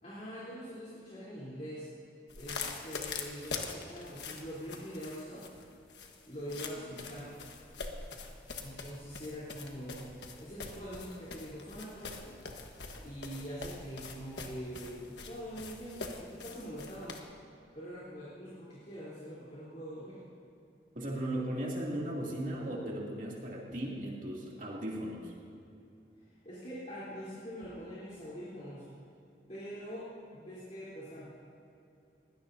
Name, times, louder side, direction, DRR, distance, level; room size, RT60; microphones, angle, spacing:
voice 1, 0.0-1.9 2.3-5.5 6.2-7.3 8.6-10.1 10.4-12.3 13.0-17.2 17.7-20.2 26.4-28.9 29.5-31.4, equal, 40° left, -10 dB, 3.6 m, -44 dB
sound 1, 2.3-17.2, left 4 dB, 75° left, 1.4 m, -43 dB
voice 2, 20.9-25.3, right 1 dB, 45° right, -3 dB, 2.6 m, -37 dB
21.5 x 16.5 x 2.8 m, 2.6 s
head